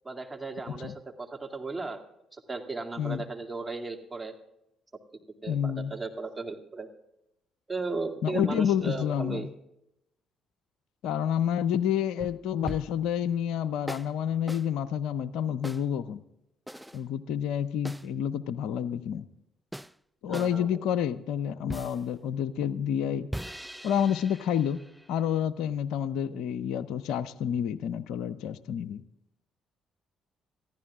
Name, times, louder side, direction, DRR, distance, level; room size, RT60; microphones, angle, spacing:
voice 1, 0.0-2.0 2.3-4.3 5.4-6.9 7.7-9.5 20.3-20.8, right 3 dB, 20° right, 3 dB, 2.4 m, -36 dB
voice 2, 5.5-5.9 8.2-9.5 11.0-16.2 16.9-19.2 20.2-23.3 23.8-24.8 25.1-29.0, left 9 dB, 70° left, 16 dB, 0.5 m, -29 dB
sound 1, 12.2-13.1 13.9-14.1 14.5-14.7 15.6-15.9 16.7-17.0 17.8-18.1 19.7-19.9 20.3-20.6 21.7-22.1 23.3-25.4, right 1 dB, 5° right, 0.4 m, -40 dB
27.5 x 15.0 x 2.4 m, 0.85 s
hypercardioid pair, 50°, 0 cm